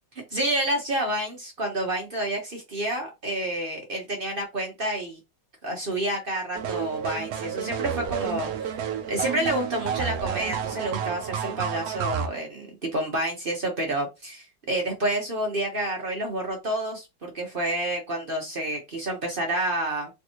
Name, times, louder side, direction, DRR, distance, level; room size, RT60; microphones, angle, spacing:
voice 1, 0.3-5.2 5.6-20.1, right 1 dB, 40° right, 1 dB, 0.8 m, -29 dB
sound 1, 6.5-12.3, right 8 dB, 70° right, 0.9 m, -31 dB
Marimba xylophone / Wood, 9.2-11.4, right 13 dB, 25° right, 1.3 m, -40 dB
3.5 x 2.9 x 2.8 m, 0.23 s
omnidirectional pair, 2.0 m